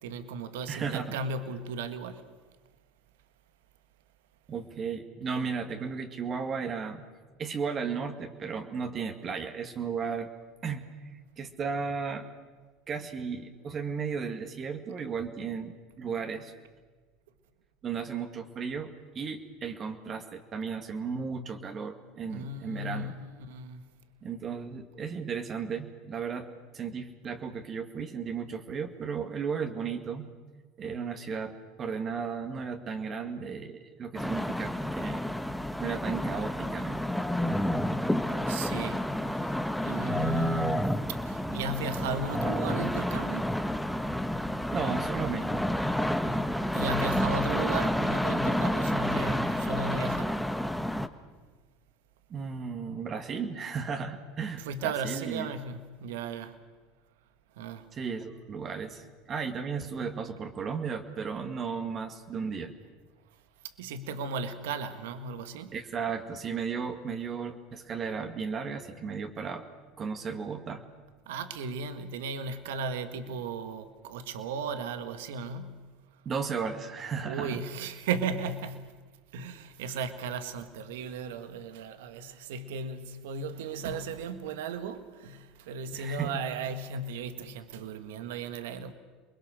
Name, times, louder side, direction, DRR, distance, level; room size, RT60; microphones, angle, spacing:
voice 1, 0.0-2.2 22.3-23.9 38.4-39.5 39.8-43.6 46.7-50.4 54.6-56.6 57.5-57.9 63.6-65.8 71.2-76.2 77.2-79.0 79.3-88.9, right 4 dB, 80° right, 1.6 m, -36 dB
voice 2, 0.7-1.2 4.5-7.0 7.4-10.3 10.6-10.9 11.4-12.3 12.9-16.5 17.8-23.1 24.2-26.5 26.7-30.3 30.8-35.2 35.8-37.0 44.7-45.8 52.3-55.5 57.9-62.7 65.7-69.6 70.0-70.8 76.3-77.6 85.9-86.4, right 6 dB, 40° right, 2.2 m, -35 dB
sound 1, 34.1-51.1, equal, ahead, 1.3 m, -29 dB
28.0 x 21.0 x 6.5 m
hypercardioid pair, 85°, 0 cm